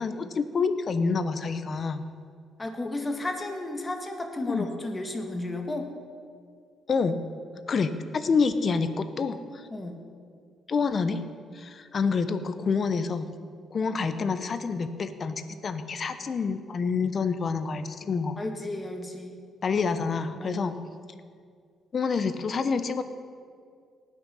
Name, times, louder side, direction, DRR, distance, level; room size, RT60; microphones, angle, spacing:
voice 1, 0.0-2.0 4.5-4.7 6.9-7.2 7.7-9.7 10.7-11.2 11.5-13.3 13.7-18.4 19.6-20.8 21.9-23.0, left 5 dB, 45° left, 11 dB, 0.9 m, -27 dB
voice 2, 2.6-5.9 9.7-10.0 12.0-12.1 18.4-19.4 20.4-20.6, left 2 dB, 20° left, 4 dB, 1.7 m, -33 dB
19.0 x 6.4 x 5.7 m, 2.1 s
cardioid pair, 90°, 0 cm